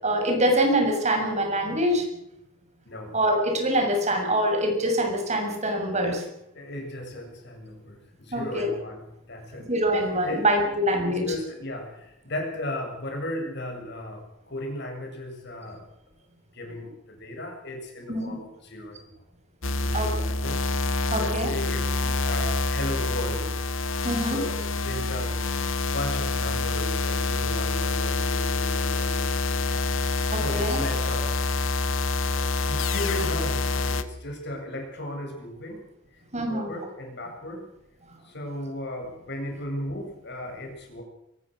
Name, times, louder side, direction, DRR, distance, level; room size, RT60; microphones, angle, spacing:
voice 1, 0.0-2.1 3.1-6.2 8.3-8.7 9.7-11.3 18.1-18.4 19.9-20.3 21.1-21.5 22.2-22.5 24.0-24.4 30.3-30.8 36.3-36.7, right 1 dB, 35° right, 3 dB, 6.8 m, -24 dB
voice 2, 2.9-3.2 6.5-9.7 10.2-10.7 11.0-15.8 16.5-19.1 19.7-23.6 24.2-25.4 25.8-29.9 30.4-31.3 31.7-31.8 32.3-35.8 36.1-36.2 36.5-37.6 38.2-41.0, left 1 dB, 60° left, 3 dB, 7.6 m, -36 dB
sound 1, 19.6-34.0, left 3 dB, 75° left, 1.7 m, -27 dB
23.0 x 20.5 x 6.5 m, 0.82 s
head